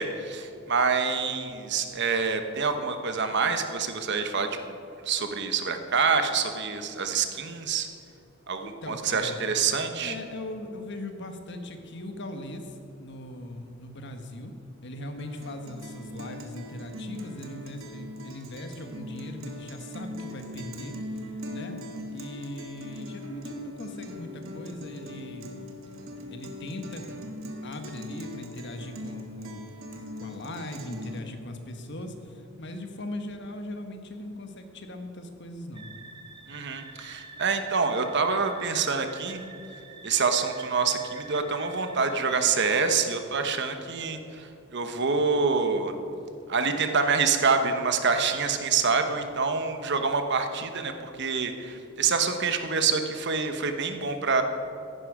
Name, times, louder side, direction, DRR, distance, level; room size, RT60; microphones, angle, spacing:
voice 1, 0.0-4.8 5.0-7.9 8.5-10.1 36.5-39.4 40.0-45.9 46.5-54.4, right 5 dB, 60° right, 7 dB, 1.1 m, -26 dB
voice 2, 8.6-9.4 10.0-14.5 14.8-20.9 21.5-21.8 22.1-25.5 26.3-27.1 27.4-29.6 30.2-35.9, left 1 dB, 60° left, 6 dB, 1.3 m, -39 dB
Guitar, 15.2-31.2, left 1 dB, 85° right, 1.4 m, -41 dB
sound 1, 35.7-42.5, right 3 dB, 25° right, 1.2 m, -47 dB
14.5 x 11.0 x 5.0 m, 2.7 s
head